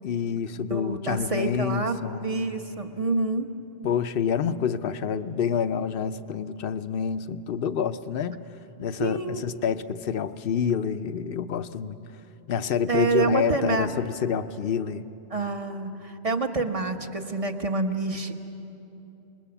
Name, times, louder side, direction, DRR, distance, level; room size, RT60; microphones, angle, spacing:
voice 1, 0.0-2.4 3.8-8.4 8.8-12.0 12.5-15.1, left 7 dB, 60° left, 12 dB, 0.8 m, -28 dB
voice 2, 0.6-3.5 9.0-9.4 12.9-13.9 15.3-18.3, right 3 dB, 30° right, 6 dB, 1.1 m, -27 dB
27.0 x 21.0 x 7.0 m, 2.9 s
omnidirectional pair, 1.2 m